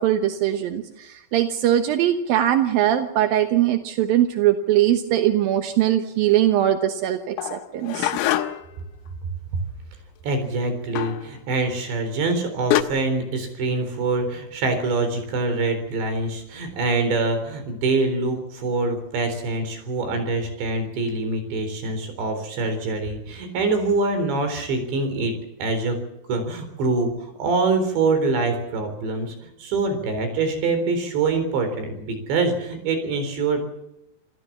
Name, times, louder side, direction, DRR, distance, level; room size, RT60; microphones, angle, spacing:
voice 1, 0.0-8.1, right 11 dB, 80° right, 7 dB, 2.1 m, -21 dB
sound 1, 7.4-8.8 11.0-11.3 12.3-12.4 12.7-12.8, left 13 dB, 85° left, 3.8 m, -24 dB
voice 2, 10.2-25.3 25.6-26.0 26.3-33.7, right 3 dB, 65° right, 8 dB, 5.9 m, -24 dB
27.0 x 15.5 x 7.3 m, 0.86 s
omnidirectional pair, 5.7 m